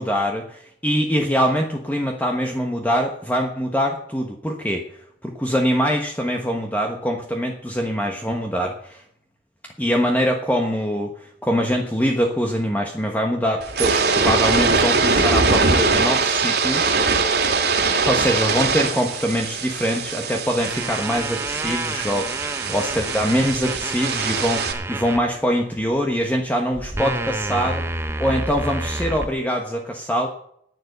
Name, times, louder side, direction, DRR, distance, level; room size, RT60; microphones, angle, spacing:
voice 1, 0.0-4.8 5.2-9.0 9.6-17.4 18.0-27.8 28.2-30.3, equal, 10° left, 2 dB, 1.2 m, -23 dB
sound 1, 13.6-24.7, right 4 dB, 65° right, 2.4 m, -22 dB
sound 2, 20.6-25.2 25.7-26.0 26.7-29.3, right 2 dB, 15° right, 0.7 m, -29 dB
10.5 x 9.6 x 8.0 m, 0.71 s
head